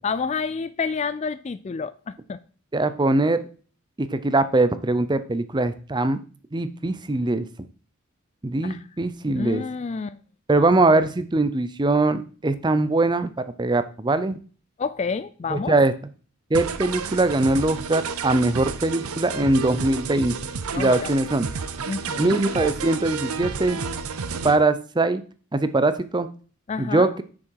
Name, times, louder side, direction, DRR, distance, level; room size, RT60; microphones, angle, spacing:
voice 1, 0.0-2.4 8.6-8.8 9.4-10.2 14.8-15.7 20.7-21.1 21.9-22.4 26.7-27.1, left 5 dB, 30° left, 0.3 m, -29 dB
voice 2, 2.7-3.4 4.0-6.2 6.5-7.5 8.4-9.6 10.5-13.3 13.6-14.4 15.5-15.9 16.5-20.3 20.8-21.5 22.2-23.8 24.4-25.2 25.5-26.3 26.8-27.2, right 2 dB, 20° right, 0.5 m, -21 dB
sound 1, 16.5-24.6, right 5 dB, 90° right, 0.7 m, -31 dB
9.5 x 6.3 x 4.7 m
head